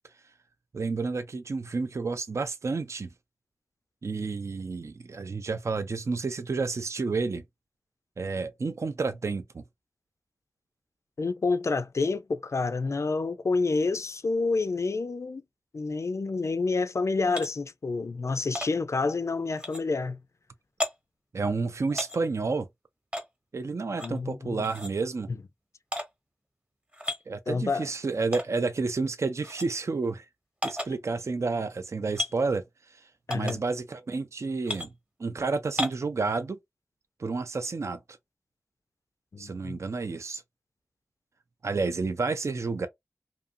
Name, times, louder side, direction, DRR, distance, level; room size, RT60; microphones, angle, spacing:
voice 1, 0.7-3.1 4.0-7.4 8.2-9.6 21.3-22.7 23.5-25.3 27.3-30.2 30.6-34.9 35.2-36.6 37.2-38.0 39.4-40.4 41.6-42.9, right 4 dB, 60° right, 0.3 m, -30 dB
voice 2, 11.2-15.4 15.7-20.2 24.0-24.7 25.3-25.4 27.5-27.9 33.3-33.6 39.3-39.8, left 3 dB, 65° left, 0.3 m, -28 dB
sound 1, 17.3-17.5 18.6-18.7 19.6-19.8 20.8-20.9 21.9-22.2 23.1-23.3 24.0-24.2 24.6-24.9 25.9-26.1 26.9-27.2 28.3-28.5 29.4-29.7 30.6-30.9 32.1-32.3 33.3-33.6 34.6-34.9 35.8-36.0, left 1 dB, 20° right, 0.9 m, -33 dB
2.6 x 2.5 x 2.5 m
wide cardioid pair, 65°, 5 cm